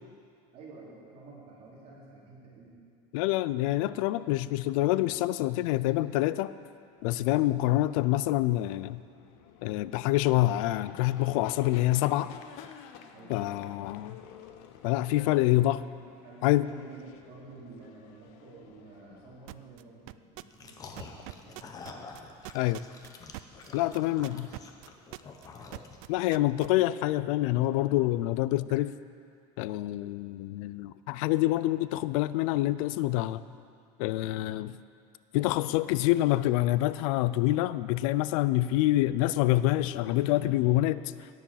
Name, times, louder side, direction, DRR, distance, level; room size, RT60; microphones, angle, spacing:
voice 1, 0.5-2.8 13.1-13.8 16.2-21.9 23.6-24.3, right 3 dB, 40° right, -6 dB, 3.7 m, -50 dB
voice 2, 3.1-6.5 7.0-9.0 9.6-12.3 13.3-14.1 14.8-15.9 16.4-16.7 22.5-22.8 23.7-24.5 26.1-28.9 29.6-33.5 34.0-34.8 35.3-41.3, left 16 dB, 80° left, 16 dB, 0.4 m, -26 dB
sound 1, 6.4-19.7, left 8 dB, 60° left, 0.8 m, -53 dB
sound 2, 19.5-19.8 20.1-20.7 21.0-26.7, right 22 dB, 75° right, 0.4 m, -42 dB
sound 3, 20.5-26.2, left 4 dB, 20° left, 0.8 m, -47 dB
17.5 x 7.5 x 5.7 m, 2.3 s
cardioid pair, 175°, 17 cm